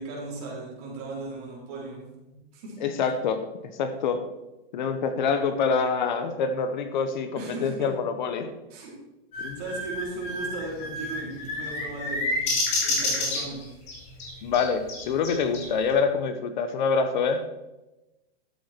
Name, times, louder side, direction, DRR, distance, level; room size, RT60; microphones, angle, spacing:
voice 1, 0.0-2.0 2.5-2.8 7.3-7.9 8.7-8.9 9.3-12.4 12.8-13.6, right 2 dB, 40° right, -4 dB, 4.3 m, -37 dB
voice 2, 2.8-3.4 3.8-4.2 4.7-8.5 9.4-9.6 14.4-17.4, left 5 dB, 50° left, 9 dB, 1.0 m, -26 dB
sound 1, 9.3-15.8, left 2 dB, 20° left, 2.6 m, -29 dB
12.5 x 7.8 x 4.5 m, 1.0 s
supercardioid pair, 170°, 30 cm